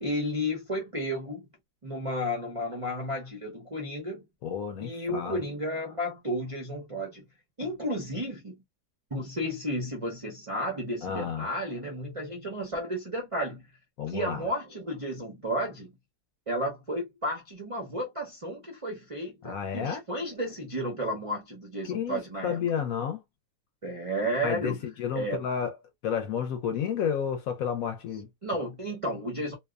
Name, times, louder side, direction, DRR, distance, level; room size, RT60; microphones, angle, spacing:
voice 1, 0.0-1.4 1.8-4.2 4.8-7.3 7.6-8.6 9.1-13.7 14.1-16.0 16.5-22.7 23.8-24.8 25.1-25.4 28.4-29.5, equal, 55° right, 0.3 m, -32 dB
voice 2, 4.4-5.4 11.0-11.5 14.0-14.4 19.4-20.0 21.9-23.2 24.4-25.8 26.0-28.3, left 8 dB, 70° left, 0.9 m, -31 dB
2.7 x 2.2 x 2.3 m
omnidirectional pair, 1.7 m